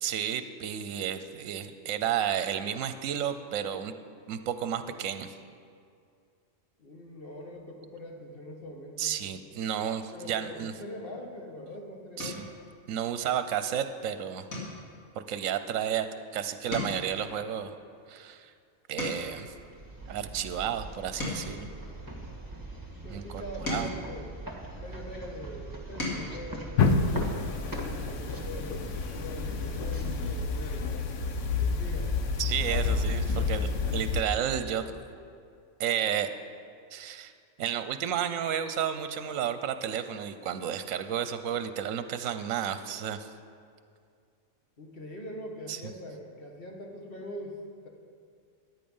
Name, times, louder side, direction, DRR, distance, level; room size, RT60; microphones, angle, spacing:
voice 1, 0.0-3.9 4.3-5.3 9.0-10.7 12.2-12.5 12.9-14.5 15.3-16.1 16.3-17.8 18.1-18.5 18.9-19.5 20.1-21.7 23.1-23.4 23.7-23.9 32.4-35.0 35.8-36.3 36.9-37.3 37.6-43.3 45.7-45.8, right 9 dB, 75° right, 10 dB, 1.0 m, -32 dB
voice 2, 6.8-9.2 10.1-12.4 23.0-24.4 24.7-27.1 27.6-28.8 29.1-31.0 31.6-32.1 32.7-33.0 44.8-47.6, equal, 45° left, 1 dB, 1.6 m, -43 dB
sound 1, 11.3-11.6 12.2-12.6 13.1-13.4 13.7-13.9 14.5-16.3 16.6-19.5 20.1-22.6 23.2-25.1 25.6-26.4 27.7-27.8 28.1-28.3, left 2 dB, 85° left, 3.0 m, -39 dB
sound 2, 19.3-31.2, right 2 dB, 15° right, 1.4 m, -42 dB
sound 3, 26.8-34.2, left 4 dB, 65° left, 1.1 m, -29 dB
14.0 x 9.6 x 5.5 m, 2.3 s
omnidirectional pair, 1.4 m